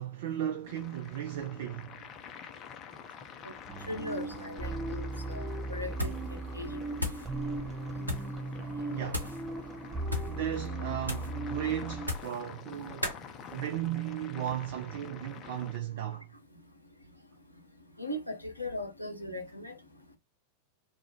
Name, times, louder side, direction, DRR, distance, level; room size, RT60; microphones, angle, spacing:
voice 1, 0.0-2.0 8.8-9.3 10.3-13.1 13.5-16.3, right 10 dB, 55° right, 0.3 m, -35 dB
sound 1, 0.6-15.8, left 7 dB, 30° left, 0.4 m, -49 dB
sound 2, 3.7-12.1, right 2 dB, 15° right, 0.8 m, -37 dB
voice 2, 3.9-6.1 6.5-7.2 18.0-19.8, left 1 dB, 85° left, 0.5 m, -39 dB
sound 3, 5.9-6.3 6.6-7.3 8.0-8.3 9.1-9.4 10.0-10.4 11.0-11.4 12.0-12.4 13.0-13.2, left 2 dB, 90° right, 0.6 m, -35 dB
2.3 x 2.0 x 3.0 m
figure-of-eight pair, 90°, 0 cm